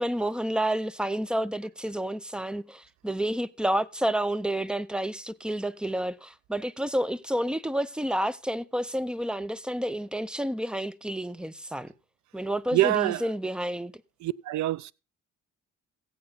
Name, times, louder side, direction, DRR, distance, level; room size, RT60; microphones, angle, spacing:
voice 1, 0.0-11.9 12.3-13.9, right 1 dB, 5° right, 0.6 m, -30 dB
voice 2, 12.7-13.2 14.2-14.9, right 15 dB, 70° right, 0.6 m, -25 dB
16.0 x 8.8 x 4.0 m
cardioid pair, 90°, 30 cm